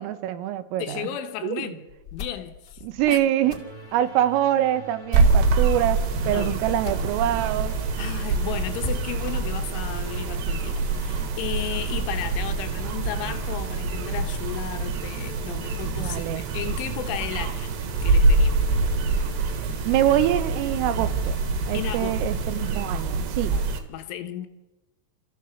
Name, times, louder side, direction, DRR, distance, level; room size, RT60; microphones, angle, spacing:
voice 1, 0.0-1.1 1.4-1.7 2.8-3.6 3.9-7.8 16.0-16.4 19.9-21.4 21.7-23.6, right 12 dB, 85° right, 3.7 m, -25 dB
voice 2, 0.8-1.8 2.1-2.8 3.1-3.2 6.3-6.6 8.0-17.7 18.0-18.6 21.7-22.2 23.5-24.5, left 12 dB, 75° left, 3.4 m, -34 dB
sound 1, 1.9-7.6 7.9-8.0 8.3-8.4 8.8-10.9, left 3 dB, 50° left, 1.2 m, -42 dB
sound 2, 3.4-22.8, right 4 dB, 25° left, 1.4 m, -43 dB
sound 3, 5.1-23.8, right 3 dB, 65° right, 3.5 m, -25 dB
29.0 x 14.5 x 7.1 m
omnidirectional pair, 5.9 m